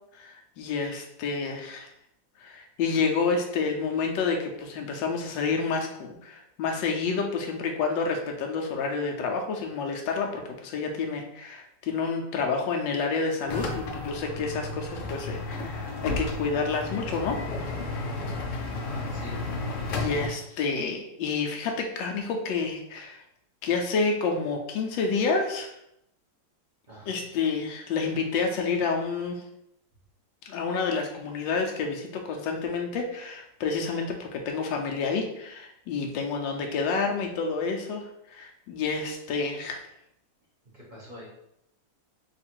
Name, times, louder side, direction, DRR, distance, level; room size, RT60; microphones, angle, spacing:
voice 1, 0.1-1.9 2.4-17.4 19.9-23.2 23.6-25.8 27.1-29.4 30.5-38.0 38.3-39.8, left 4 dB, 85° left, 2 dB, 1.3 m, -29 dB
sound 1, 13.5-20.3, left 2 dB, 70° left, 0.7 m, -33 dB
voice 2, 18.7-19.4 26.9-27.2 36.6-36.8 40.7-41.3, equal, 35° right, -5 dB, 0.8 m, -45 dB
3.7 x 2.4 x 4.3 m, 0.78 s
omnidirectional pair, 2.0 m